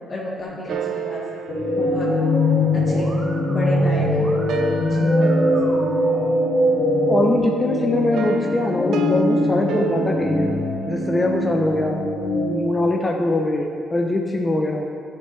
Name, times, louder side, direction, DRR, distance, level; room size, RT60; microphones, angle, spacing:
voice 1, 0.1-1.2 1.7-2.1 2.7-3.1 3.5-5.8, left 1 dB, 45° left, -6 dB, 1.7 m, -31 dB
sound 1, 0.7-3.7 4.2-7.0 8.1-11.4, right 5 dB, 75° right, 0.5 m, -31 dB
sound 2, 1.5-12.5, left 1 dB, 65° left, 2.0 m, -21 dB
Musical instrument, 1.8-7.4, right 1 dB, 45° right, 2.0 m, -40 dB
voice 2, 7.0-10.5 10.9-12.0 12.5-14.9, left 2 dB, 25° left, 1 dB, 0.7 m, -22 dB
11.0 x 6.9 x 3.3 m, 2.5 s
cardioid pair, 90°, 0 cm